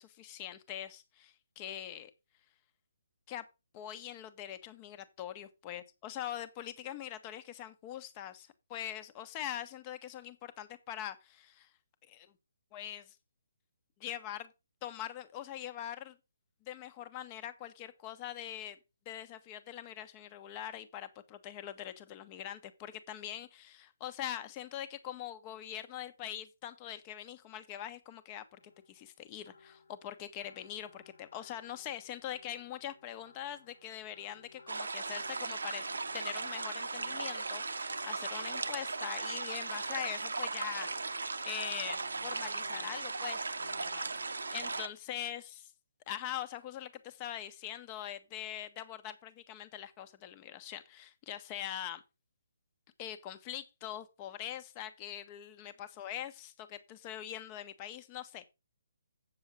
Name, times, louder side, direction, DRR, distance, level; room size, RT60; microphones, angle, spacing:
voice 1, 0.0-2.1 3.3-3.4 3.7-11.7 12.1-12.3 12.7-13.1 14.0-14.5 14.8-16.1 16.6-18.8 19.0-28.6 28.9-43.4 43.8-45.6 46.1-52.0 53.0-58.5, left 11 dB, 25° left, 1.2 m, -43 dB
sound 1, 28.5-44.8, left 4 dB, 70° left, 1.8 m, -57 dB
sound 2, 34.7-44.9, right 3 dB, 70° right, 0.8 m, -37 dB
8.4 x 7.0 x 5.3 m
figure-of-eight pair, 140°, 0 cm